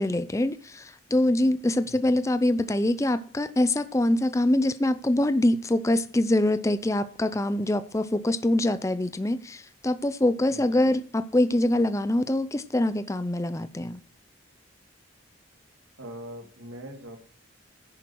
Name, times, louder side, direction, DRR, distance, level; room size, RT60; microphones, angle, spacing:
voice 1, 0.0-14.0, left 1 dB, 15° left, 0.5 m, -24 dB
voice 2, 1.8-2.2 10.5-11.0 16.0-17.2, equal, 85° right, 2.7 m, -42 dB
11.0 x 10.5 x 4.6 m
head